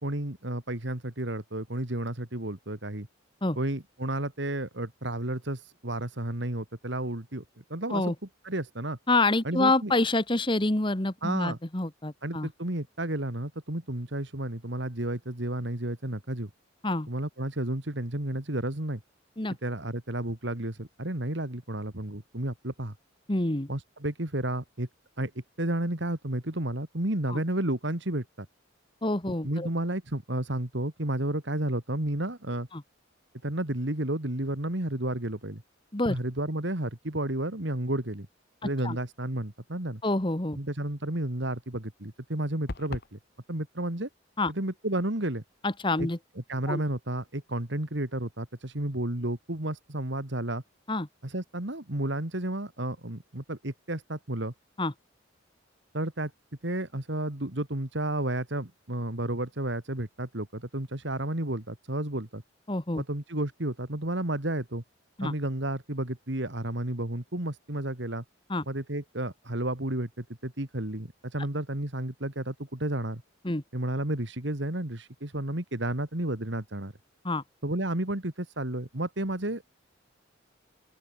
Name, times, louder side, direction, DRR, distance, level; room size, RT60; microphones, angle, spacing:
voice 1, 0.0-3.1 3.6-7.4 7.7-8.1 8.4-9.0 9.4-9.9 11.2-11.6 12.2-16.5 17.1-19.0 19.6-22.9 23.7-24.9 25.2-25.3 25.6-28.5 29.4-32.7 33.4-35.6 36.1-38.3 38.6-40.0 40.6-43.2 43.5-44.1 44.5-45.4 46.0-46.1 46.5-50.6 51.2-54.5 55.9-56.3 56.6-62.4 63.0-64.8 65.2-68.2 68.7-73.2 73.7-76.9 77.6-79.7, right 1 dB, 60° right, 2.5 m, -32 dB
voice 2, 9.1-12.5 16.8-17.1 19.4-19.5 23.3-23.7 27.3-27.4 29.0-29.7 32.7-32.8 35.9-36.2 38.8-39.0 40.0-40.6 44.4-44.5 45.6-46.2 46.7-46.8 50.9-51.1 54.8-54.9 62.7-63.0 65.2-65.3 68.5-68.6 73.4-73.6 77.2-77.4, left 2 dB, 25° left, 1.4 m, -27 dB
sound 1, 42.7-43.2, left 2 dB, 50° left, 1.3 m, -37 dB
open air
head